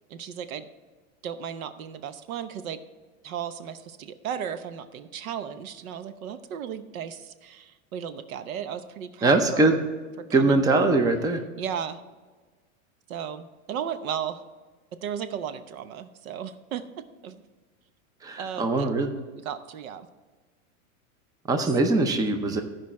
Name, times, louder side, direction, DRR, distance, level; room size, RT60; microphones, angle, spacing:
voice 1, 0.1-0.7 1.2-2.8 3.2-9.7 10.2-10.6 11.6-12.0 13.1-14.4 15.0-17.4 18.4-18.9 19.4-20.1, right 8 dB, 85° right, 11 dB, 0.9 m, -35 dB
voice 2, 9.2-9.8 10.3-11.4 18.2-19.1 21.5-22.6, right 2 dB, 10° right, 7 dB, 0.6 m, -22 dB
14.5 x 5.1 x 4.2 m, 1.4 s
supercardioid pair, 140°, 41 cm